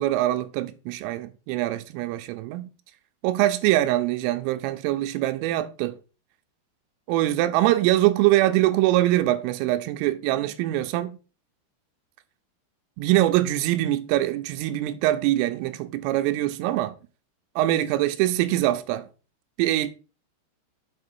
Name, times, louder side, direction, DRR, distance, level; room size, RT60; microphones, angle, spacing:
voice 1, 0.0-2.7 3.2-6.0 7.1-11.2 13.0-17.0 17.6-19.1 19.6-19.9, right 15 dB, 85° right, 3.1 m, -23 dB
7.5 x 5.0 x 4.3 m
omnidirectional pair, 5.9 m